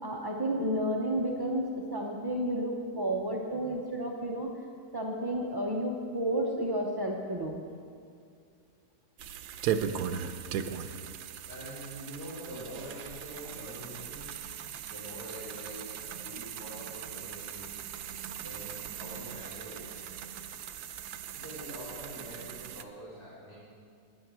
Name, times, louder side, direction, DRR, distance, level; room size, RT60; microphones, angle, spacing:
voice 1, 0.0-4.5 4.9-7.6, right 1 dB, 35° right, -1 dB, 0.4 m, -31 dB
sound 1, 9.2-22.8, right 8 dB, 90° right, 1.2 m, -38 dB
voice 2, 11.5-14.4 14.9-17.8 18.4-20.4 21.3-23.6, equal, 90° left, -12 dB, 4.2 m, -45 dB
10.5 x 9.3 x 6.1 m, 2.3 s
omnidirectional pair, 1.7 m